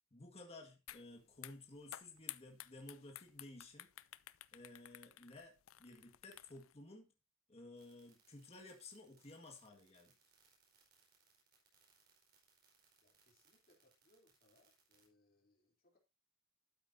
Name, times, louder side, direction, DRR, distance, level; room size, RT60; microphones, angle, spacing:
voice 1, 0.1-3.9 4.5-7.1 7.5-10.1, left 2 dB, 30° left, 2 dB, 1.9 m, -55 dB
sound 1, 0.9-1.0 1.3-6.7, left 14 dB, 70° left, 0.5 m, -53 dB
sound 2, 7.7-15.1, right 6 dB, 50° right, 4.7 m, -72 dB
voice 2, 13.0-16.0, left 1 dB, 45° left, 0 dB, 3.6 m, -74 dB
12.5 x 8.8 x 2.8 m, 0.26 s
head